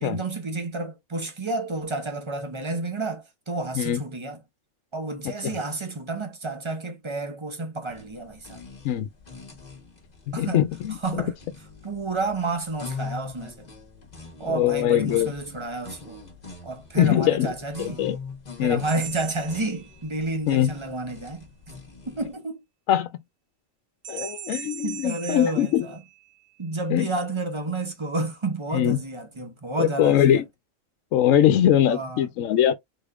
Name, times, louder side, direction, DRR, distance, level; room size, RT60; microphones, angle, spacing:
voice 1, 0.0-4.4 4.9-8.6 10.3-13.7 14.4-16.2 16.6-18.0 18.6-21.5 22.0-22.6 24.8-26.1 26.6-30.5 31.9-32.4, right 2 dB, 25° right, 0.9 m, -31 dB
sound 1, 7.9-22.3, left 5 dB, 35° left, 1.1 m, -43 dB
voice 2, 10.4-11.2 14.5-15.3 17.0-17.5 17.8-18.2 18.6-18.8 20.5-20.7 22.9-23.1 24.1-25.8 26.9-27.1 28.7-29.0 29.8-30.4 31.1-32.8, left 11 dB, 85° left, 1.0 m, -21 dB
sound 2, 18.9-20.4 24.0-26.6, right 9 dB, 75° right, 1.3 m, -40 dB
3.9 x 3.4 x 2.4 m
omnidirectional pair, 1.3 m